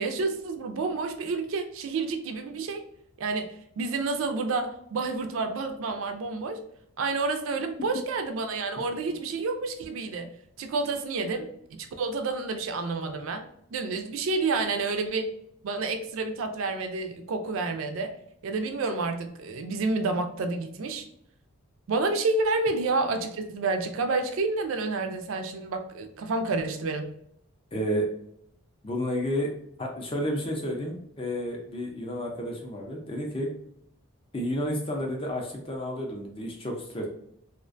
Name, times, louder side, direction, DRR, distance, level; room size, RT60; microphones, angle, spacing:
voice 1, 0.0-2.9 3.2-3.5 3.8-6.6 7.0-10.3 10.6-13.4 13.7-15.2 15.6-18.1 18.4-21.0 21.9-27.1, right 3 dB, 70° right, 6 dB, 0.4 m, -29 dB
voice 2, 27.7-28.1 28.8-29.5 29.8-33.5 34.3-37.1, equal, 25° left, 0 dB, 0.4 m, -31 dB
2.4 x 2.1 x 2.4 m, 0.72 s
head